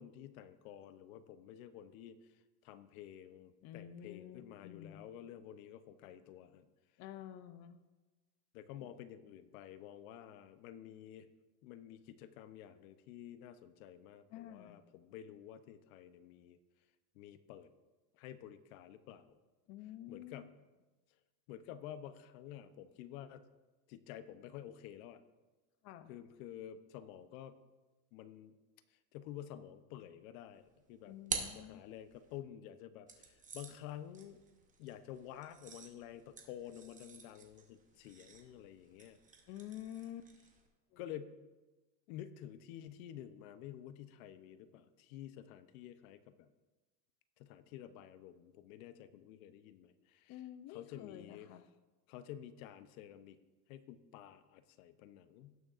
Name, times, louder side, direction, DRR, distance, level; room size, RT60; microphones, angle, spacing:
voice 1, 0.0-6.7 8.5-11.3 11.6-16.6 17.1-17.7 18.1-19.4 20.1-20.5 21.5-23.4 23.9-25.2 26.1-27.6 28.1-28.6 28.9-34.4 34.8-39.2 41.0-41.4 42.1-46.5 47.4-50.4 50.7-51.5 52.1-53.4 53.7-55.6, left 11 dB, 80° left, 12 dB, 0.7 m, -51 dB
voice 2, 3.6-5.0 7.0-7.8 14.3-14.8 19.7-20.4 25.8-26.1 31.1-31.8 39.5-40.3 40.9-41.0 50.3-51.6, left 11 dB, 40° left, 10 dB, 0.5 m, -49 dB
sound 1, 30.6-32.4 33.1-40.7, right 5 dB, 20° right, 0.9 m, -48 dB
17.5 x 6.3 x 2.4 m, 1.2 s
cardioid pair, 150°, 41 cm